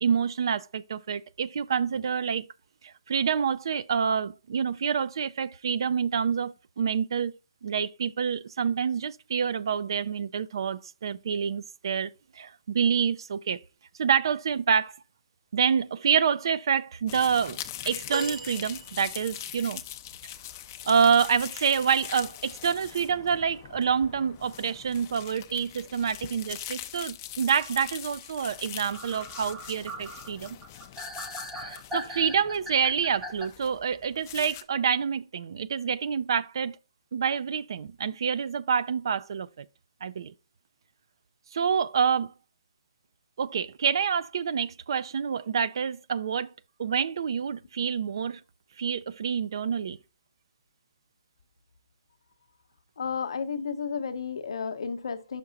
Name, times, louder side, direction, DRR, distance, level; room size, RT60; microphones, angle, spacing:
voice 1, 0.0-2.5 2.8-7.3 7.6-13.6 14.0-14.9 15.5-17.6 17.9-19.8 20.9-30.6 31.5-36.8 37.1-39.7 40.0-40.3 41.5-42.3 43.4-46.5 46.8-48.4 48.8-50.0, right 7 dB, 55° right, 0.4 m, -27 dB
sound 1, 17.1-34.6, left 12 dB, 25° left, 0.4 m, -42 dB
sound 2, 18.1-19.5 21.9-22.1 23.4-23.5, right 4 dB, 70° right, 1.2 m, -37 dB
sound 3, 28.5-28.6 28.9-33.5, equal, 10° right, 0.6 m, -40 dB
voice 2, 53.0-55.4, left 6 dB, 65° left, 0.7 m, -32 dB
5.9 x 4.7 x 3.8 m
hypercardioid pair, 160°, 3 cm